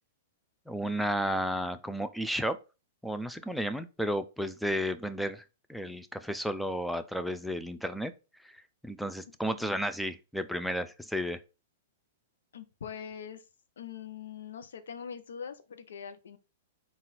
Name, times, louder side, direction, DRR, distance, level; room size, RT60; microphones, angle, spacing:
voice 1, 0.7-2.6 3.0-5.4 5.7-8.1 8.4-8.6 8.8-11.4, equal, ahead, 10 dB, 0.4 m, -32 dB
voice 2, 9.4-9.8 12.5-13.4 13.8-16.4, left 7 dB, 80° left, 10 dB, 0.6 m, -43 dB
4.0 x 2.4 x 4.0 m, 0.30 s
hypercardioid pair, 125°, 0 cm